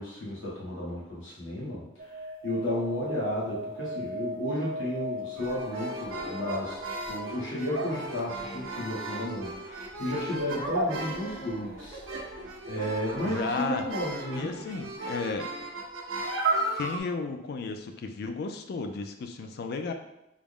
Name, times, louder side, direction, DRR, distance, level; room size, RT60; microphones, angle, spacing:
voice 1, 0.0-12.4 12.6-14.5, left 1 dB, 80° left, -5 dB, 1.2 m, -33 dB
sound 1, 2.0-7.3, right 1 dB, 45° right, 0.3 m, -38 dB
sound 2, 5.3-17.0, right 2 dB, 90° right, 0.6 m, -35 dB
voice 2, 13.2-13.8 14.3-15.5 16.8-19.9, left 4 dB, 55° left, 7 dB, 0.3 m, -33 dB
3.5 x 2.0 x 3.5 m, 0.87 s
head